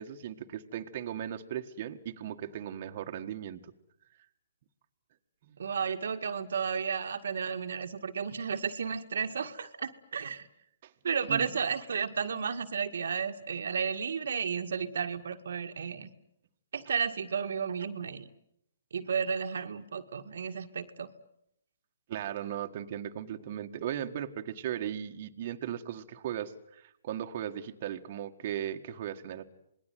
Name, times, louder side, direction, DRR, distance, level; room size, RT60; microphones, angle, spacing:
voice 1, 0.0-3.7 5.5-5.6 10.8-10.9 11.3-11.5 16.7-16.9 22.1-29.4, right 10 dB, 45° right, 4 dB, 1.6 m, -37 dB
voice 2, 5.6-10.5 11.0-16.1 16.7-18.3 18.9-21.1, right 6 dB, 70° right, 6 dB, 1.8 m, -33 dB
27.0 x 20.5 x 9.3 m, 0.77 s
hypercardioid pair, 145°, 0 cm